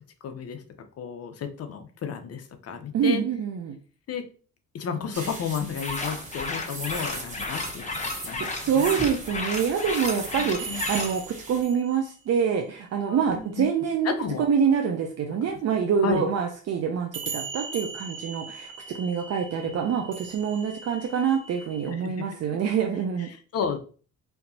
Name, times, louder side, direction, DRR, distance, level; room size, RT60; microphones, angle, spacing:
voice 1, 0.2-0.6 1.0-3.3 4.1-4.3 4.7-7.9 8.2-9.0 10.1-11.2 13.1-13.7 14.0-14.5 15.4-15.5 16.0-16.3 19.6-19.8 21.9-22.6 23.2-23.8, left 6 dB, 55° left, 7 dB, 0.8 m, -33 dB
voice 2, 2.9-3.7 8.4-14.1 14.4-23.3, right 7 dB, 55° right, 3 dB, 0.6 m, -26 dB
sound 1, 5.1-11.6, right 2 dB, 25° right, 1.5 m, -39 dB
sound 2, 5.8-11.2, left 3 dB, 25° left, 0.8 m, -33 dB
sound 3, 8.5-10.0 10.3-12.0 15.7-15.8 17.1-21.9, right 4 dB, 40° right, 1.3 m, -40 dB
4.5 x 2.8 x 2.7 m, 0.39 s
cardioid pair, 90°, 30 cm